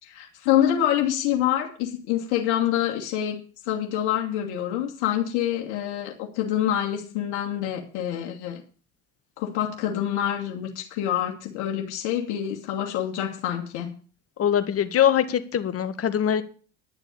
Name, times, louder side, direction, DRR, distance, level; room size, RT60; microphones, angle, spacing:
voice 1, 0.0-3.4 3.7-8.6 9.4-13.9, left 11 dB, 70° left, 0 dB, 2.8 m, -26 dB
voice 2, 14.4-16.4, left 9 dB, 40° left, 12 dB, 1.7 m, -22 dB
11.0 x 6.9 x 8.7 m, 0.38 s
hypercardioid pair, 75°, 35 cm